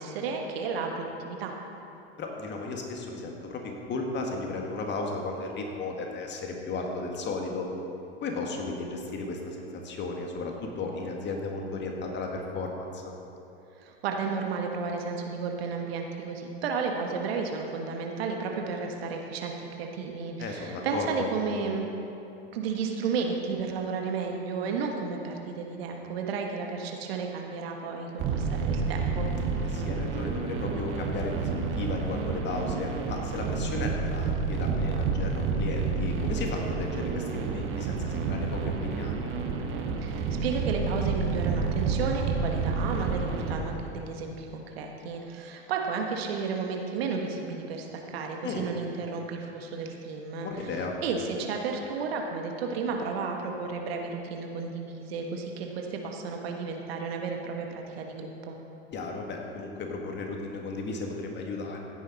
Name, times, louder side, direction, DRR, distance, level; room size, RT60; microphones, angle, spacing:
voice 1, 0.0-1.5 13.8-21.8 22.5-29.3 40.0-50.7 51.0-58.6, right 5 dB, 60° right, 2 dB, 1.5 m, -33 dB
voice 2, 2.2-7.7 8.2-13.0 20.4-21.3 29.7-31.5 31.8-39.3 48.4-48.7 50.4-50.9 58.9-61.8, left 3 dB, 35° left, 1 dB, 1.9 m, -35 dB
sound 1, 28.2-43.5, right 4 dB, 35° right, 1.5 m, -29 dB
16.0 x 9.5 x 4.2 m, 2.8 s
figure-of-eight pair, 85°, 33 cm